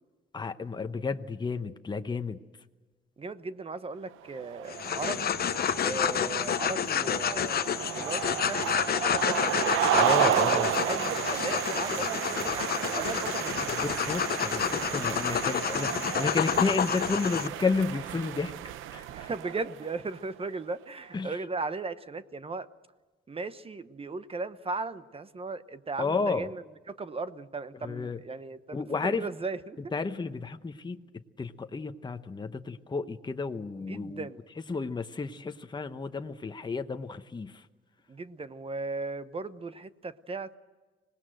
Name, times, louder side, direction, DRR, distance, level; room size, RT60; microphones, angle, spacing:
voice 1, 0.3-2.4 9.9-10.7 13.7-18.5 18.9-19.3 21.1-21.3 26.0-26.5 27.8-28.2 28.7-29.3 29.9-34.3 34.7-37.6, left 4 dB, 20° left, 8 dB, 1.0 m, -32 dB
voice 2, 3.2-5.3 5.8-9.5 10.3-13.8 19.1-22.7 23.3-29.8 33.8-34.4 38.1-40.5, right 3 dB, 30° right, 13 dB, 1.0 m, -37 dB
sound 1, 4.3-20.0, right 12 dB, 90° right, 0.8 m, -32 dB
sound 2, 4.7-17.5, left 9 dB, 50° left, 0.9 m, -29 dB
25.5 x 19.0 x 7.8 m, 1.3 s
cardioid pair, 90°, 20 cm